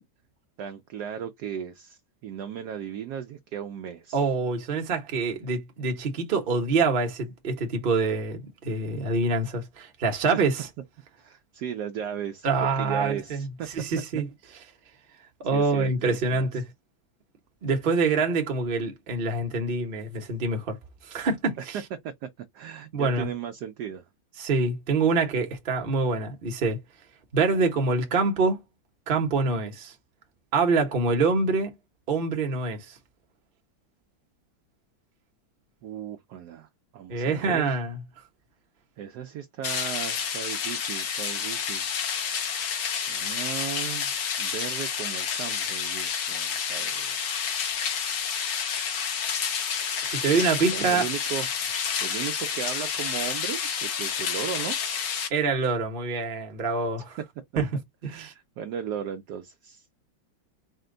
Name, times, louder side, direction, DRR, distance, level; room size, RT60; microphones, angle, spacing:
voice 1, 0.6-4.2 10.3-10.4 11.2-13.7 14.5-14.6 15.5-16.6 22.0-24.1 35.8-37.8 39.0-41.9 43.1-47.2 50.7-51.5 52.0-54.8 58.0-59.9, right 8 dB, 75° right, 0.9 m, -36 dB
voice 2, 4.1-10.7 12.4-14.3 15.4-16.6 17.6-20.8 21.1-21.8 22.9-23.3 24.4-26.8 27.3-28.6 29.1-29.9 30.5-31.7 32.1-32.9 37.1-38.0 50.0-51.0 55.3-57.2 57.6-57.7 58.0-58.3, right 4 dB, 40° right, 0.8 m, -25 dB
sound 1, 39.6-55.3, left 7 dB, 65° left, 1.5 m, -29 dB
4.2 x 2.2 x 3.7 m
omnidirectional pair, 2.2 m